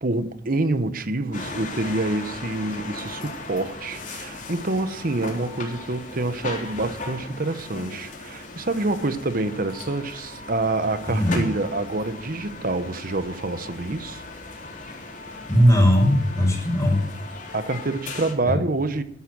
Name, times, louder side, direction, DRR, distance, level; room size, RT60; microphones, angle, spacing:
voice 1, 0.0-14.3 17.5-19.0, right 2 dB, 55° right, 1.0 m, -27 dB
sound 1, 1.3-18.3, left 3 dB, 45° left, 3.7 m, -37 dB
voice 2, 11.1-11.4 15.5-17.0 18.5-18.6, equal, 20° left, 5.1 m, -18 dB
11.5 x 11.0 x 6.1 m
head